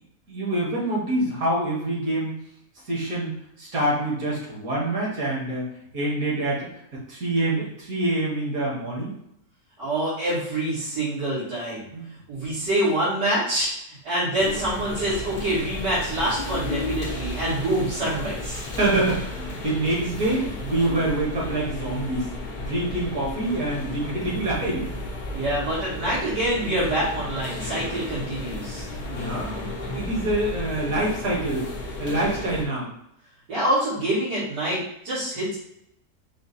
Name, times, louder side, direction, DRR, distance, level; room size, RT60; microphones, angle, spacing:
voice 1, 0.3-2.3 2.9-5.7 5.9-9.1 11.9-12.1 18.8-22.3 22.6-24.9 29.1-29.5 29.9-31.7 32.0-32.9, right 1 dB, 55° right, -4 dB, 1.9 m, -26 dB
voice 2, 9.8-11.9 12.3-13.7 14.0-18.6 25.3-28.9 33.5-35.6, right 1 dB, 75° right, -13 dB, 2.6 m, -26 dB
sound 1, 14.4-32.6, left 2 dB, 40° left, 0.7 m, -33 dB
4.8 x 2.2 x 4.2 m, 0.76 s
omnidirectional pair, 1.8 m